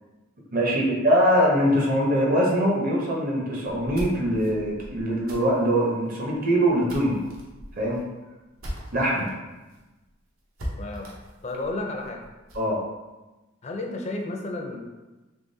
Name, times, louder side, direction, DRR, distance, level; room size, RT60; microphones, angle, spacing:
voice 1, 0.5-7.2 7.8-8.0 8.9-9.3 12.5-12.8, equal, 40° right, -3 dB, 0.8 m, -22 dB
sound 1, 3.6-9.3 9.7-9.8 10.1-10.2 10.6-12.7, equal, 70° right, 0.9 m, -39 dB
voice 2, 10.8-11.1 11.4-12.2 13.6-14.8, left 2 dB, 30° left, 1 dB, 0.4 m, -32 dB
3.6 x 3.4 x 2.7 m, 1.1 s
head